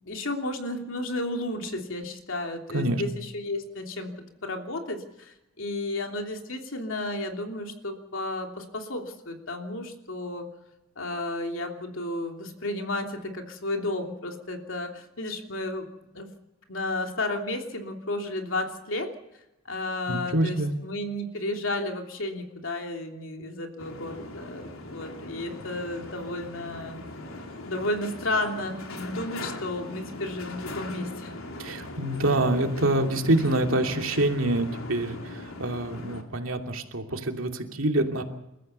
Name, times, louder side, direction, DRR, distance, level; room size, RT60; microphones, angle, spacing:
voice 1, 0.0-10.5 11.0-15.9 16.1-16.3 16.7-19.1 19.6-27.0 27.7-31.3, left 2 dB, 65° left, 3 dB, 3.2 m, -32 dB
voice 2, 20.1-20.7 31.6-38.2, right 1 dB, 70° right, 4 dB, 2.7 m, -26 dB
sound 1, 23.8-36.2, left 2 dB, 80° left, 3.0 m, -40 dB
29.5 x 14.0 x 6.9 m, 0.94 s
head